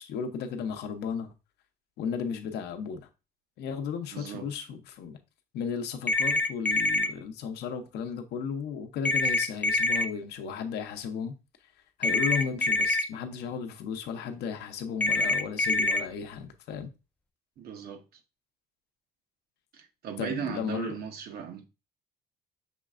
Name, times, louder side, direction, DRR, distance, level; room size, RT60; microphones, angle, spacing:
voice 1, 0.0-1.3 2.0-3.1 3.6-5.2 5.5-11.3 12.0-16.9 20.2-20.9, left 6 dB, 75° left, 0.7 m, -34 dB
voice 2, 4.1-4.5 17.6-18.0 19.7-21.6, right 7 dB, 65° right, 0.8 m, -37 dB
sound 1, 6.1-7.1 9.0-10.0 12.0-13.0 15.0-16.0, left 2 dB, 10° left, 0.3 m, -25 dB
5.7 x 3.2 x 2.4 m
cardioid pair, 110°, 17 cm